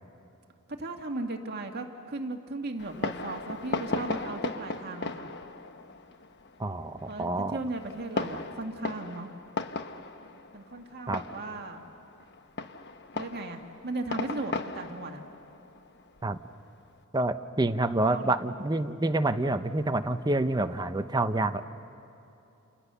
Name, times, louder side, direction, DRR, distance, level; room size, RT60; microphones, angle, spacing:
voice 1, 0.7-5.3 7.1-9.3 10.5-11.9 13.1-15.2 17.9-18.3, right 2 dB, 50° right, 3 dB, 2.0 m, -37 dB
Fireworks, 2.8-16.9, left 3 dB, 55° left, 1.1 m, -37 dB
voice 2, 6.6-7.6 11.1-11.2 16.2-16.4 17.1-21.6, right 2 dB, 20° right, 8 dB, 0.8 m, -27 dB
30.0 x 28.5 x 6.9 m, 2.8 s
head